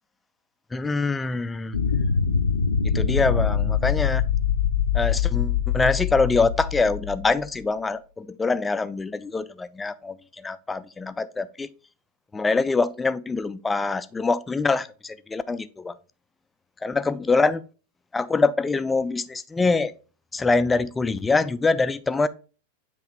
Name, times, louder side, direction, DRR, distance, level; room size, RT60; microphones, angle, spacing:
voice 1, 0.7-1.8 2.8-4.3 4.9-11.7 12.3-15.9 16.8-17.6 18.1-19.9 20.3-22.3, left 3 dB, 10° left, 0.4 m, -24 dB
sound 1, 1.7-7.5, left 7 dB, 75° left, 0.6 m, -24 dB
7.8 x 3.0 x 4.3 m
figure-of-eight pair, 90°, 0 cm